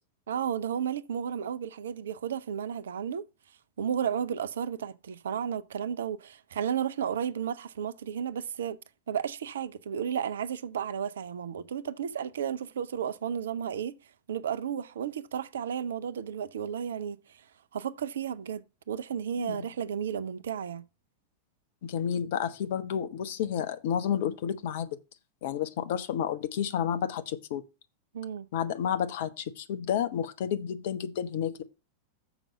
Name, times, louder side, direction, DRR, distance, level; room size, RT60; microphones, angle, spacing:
voice 1, 0.3-3.3 3.8-8.8 9.1-14.0 14.3-17.4 17.7-18.6 18.9-20.8 28.1-28.5, right 8 dB, 65° right, 0.5 m, -33 dB
voice 2, 21.8-25.0 25.4-27.6 28.5-31.6, left 9 dB, 55° left, 0.9 m, -31 dB
7.1 x 5.3 x 5.8 m
figure-of-eight pair, 90°, 0 cm